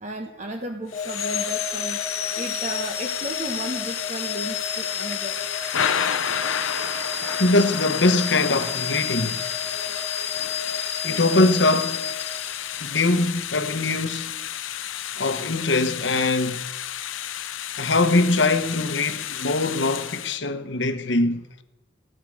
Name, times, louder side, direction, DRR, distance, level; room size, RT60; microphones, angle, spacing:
voice 1, 0.0-2.0 2.4-5.4, right 1 dB, 35° right, 1.1 m, -34 dB
Thunder / Rain, 0.9-20.4, left 9 dB, 85° left, 0.8 m, -31 dB
sound 1, 0.9-13.0, left 6 dB, 35° left, 1.3 m, -31 dB
voice 2, 7.4-9.5 11.0-12.1 12.8-14.3 15.2-16.7 17.8-21.6, left 2 dB, 65° left, 1.1 m, -22 dB
17.0 x 12.0 x 6.5 m
head